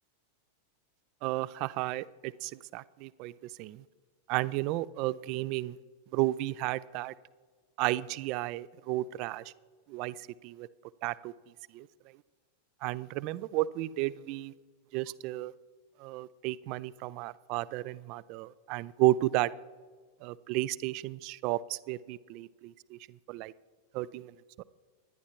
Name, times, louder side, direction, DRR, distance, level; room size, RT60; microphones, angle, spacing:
voice 1, 1.2-3.3 3.6-3.8 4.3-5.8 6.1-7.1 7.8-9.5 9.9-10.7 11.0-11.3 11.7-11.9 12.8-14.5 14.9-15.5 16.0-19.5 20.2-23.5 23.9-24.6, right 17 dB, 45° right, 20 dB, 0.4 m, -33 dB
25.0 x 10.5 x 2.9 m, 1.5 s
figure-of-eight pair, 90°, 0 cm